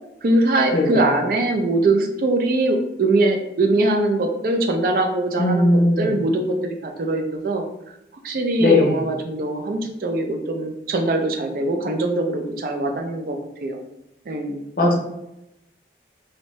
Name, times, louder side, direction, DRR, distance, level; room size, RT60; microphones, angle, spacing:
voice 1, 0.2-7.7 8.2-13.8 14.3-14.6, right 2 dB, 50° right, 4 dB, 0.4 m, -22 dB
voice 2, 0.7-1.0 5.4-6.1 8.6-8.9 14.8-14.9, left 2 dB, 50° left, -1 dB, 0.5 m, -17 dB
2.6 x 2.1 x 3.0 m, 0.86 s
head